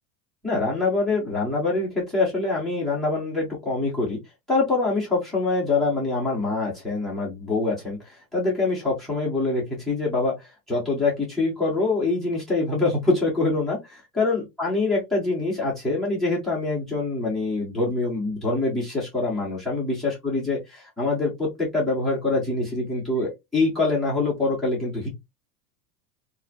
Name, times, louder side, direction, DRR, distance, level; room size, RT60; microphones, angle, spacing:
voice 1, 0.4-4.2 4.5-25.1, left 3 dB, ahead, -3 dB, 0.4 m, -25 dB
4.2 x 2.5 x 2.2 m, 0.20 s
supercardioid pair, 175°, 46 cm